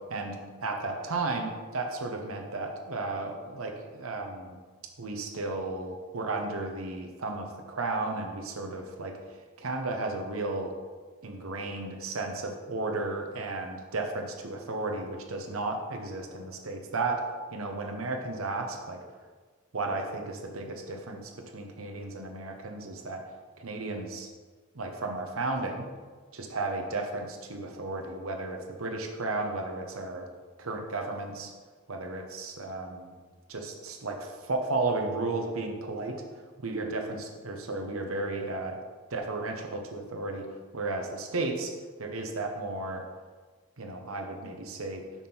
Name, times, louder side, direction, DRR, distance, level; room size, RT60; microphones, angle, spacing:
voice 1, 0.1-4.6 5.0-9.1 9.6-10.7 11.2-17.2 17.5-19.0 19.7-23.2 23.6-24.3 24.7-25.9 26.3-30.2 30.6-31.5 31.9-33.1 33.5-36.2 36.6-38.8 39.1-41.7 42.0-43.0 43.8-45.0, right 2 dB, 90° right, 3 dB, 1.0 m, -34 dB
5.8 x 5.5 x 4.4 m, 1.4 s
head